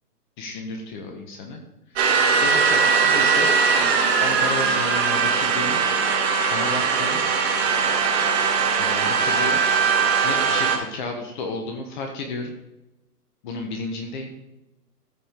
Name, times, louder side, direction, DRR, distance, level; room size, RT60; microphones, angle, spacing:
voice 1, 0.4-1.6 1.9-2.1 2.4-3.5 4.2-5.8 6.5-7.2 8.7-9.6 10.2-12.5 13.4-14.3, left 3 dB, 30° left, 4 dB, 1.3 m, -32 dB
sound 1, 2.0-10.8, right 5 dB, 40° right, 2.4 m, -20 dB
14.0 x 5.1 x 3.6 m, 0.95 s
figure-of-eight pair, 135°, 47 cm